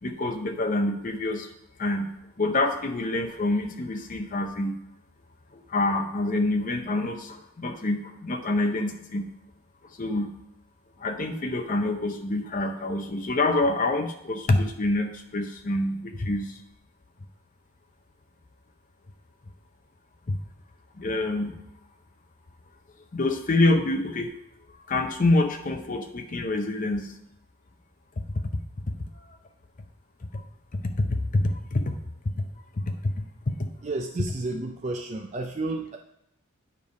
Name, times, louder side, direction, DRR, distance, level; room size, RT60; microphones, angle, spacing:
voice 1, 0.0-1.5 1.8-2.1 2.4-4.8 5.5-9.3 9.8-10.3 11.0-16.6 20.3-20.4 21.0-21.5 23.1-24.3 24.7-27.2 29.2-29.3 30.3-30.4 30.7-32.0 32.4-32.5 32.8-33.2, left 2 dB, 35° left, 6 dB, 0.6 m, -26 dB
voice 2, 33.8-36.0, right 2 dB, 30° right, 2 dB, 0.4 m, -31 dB
9.2 x 3.4 x 5.2 m, 0.79 s
head